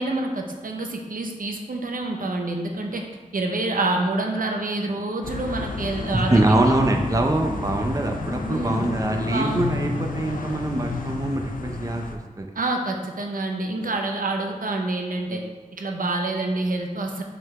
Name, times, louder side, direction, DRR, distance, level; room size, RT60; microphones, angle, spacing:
voice 1, 0.0-3.1 3.3-6.8 8.4-8.9 9.3-9.6 12.6-15.4 15.7-17.2, right 2 dB, 80° right, 2 dB, 0.7 m, -27 dB
sound 1, 5.2-12.2, left 3 dB, 75° left, 0.6 m, -31 dB
voice 2, 6.3-12.5, right 1 dB, 25° right, 3 dB, 0.6 m, -23 dB
5.3 x 3.9 x 4.7 m, 1.3 s
wide cardioid pair, 50°, 14 cm